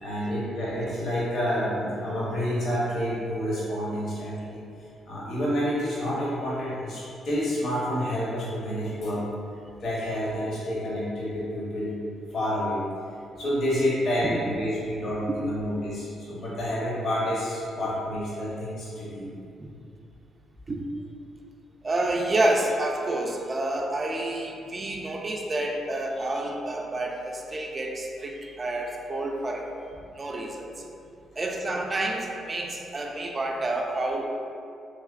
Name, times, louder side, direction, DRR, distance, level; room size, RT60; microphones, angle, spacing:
voice 1, 0.0-4.6 5.1-9.2 9.8-12.0 12.3-12.8 13.4-19.3, equal, 60° left, -7 dB, 0.9 m, -29 dB
voice 2, 21.8-29.7 30.2-30.7 31.4-34.3, right 2 dB, 30° right, 1 dB, 0.4 m, -29 dB
3.4 x 3.0 x 2.4 m, 2.4 s
cardioid pair, 90°, 0 cm